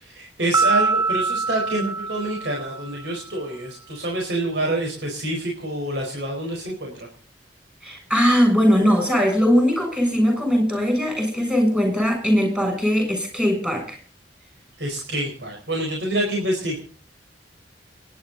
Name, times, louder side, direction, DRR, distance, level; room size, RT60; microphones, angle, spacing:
voice 1, 0.0-7.1 14.8-16.8, right 1 dB, 70° right, 0 dB, 4.7 m, -27 dB
Piano, 0.5-3.1, right 4 dB, 20° right, 1.4 m, -24 dB
voice 2, 7.8-14.0, equal, 5° right, 4 dB, 7.0 m, -20 dB
28.5 x 10.5 x 4.0 m, 0.41 s
head